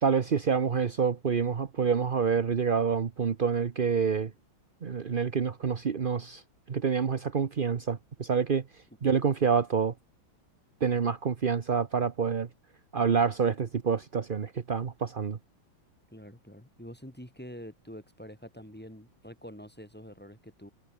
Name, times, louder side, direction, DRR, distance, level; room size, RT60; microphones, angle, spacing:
voice 1, 0.0-4.3 4.8-6.4 6.7-8.6 9.0-9.9 10.8-12.5 12.9-15.4, right 6 dB, 45° right, 0.6 m, -27 dB
voice 2, 16.1-20.7, equal, 5° left, 5.7 m, -46 dB
omnidirectional pair, 2.3 m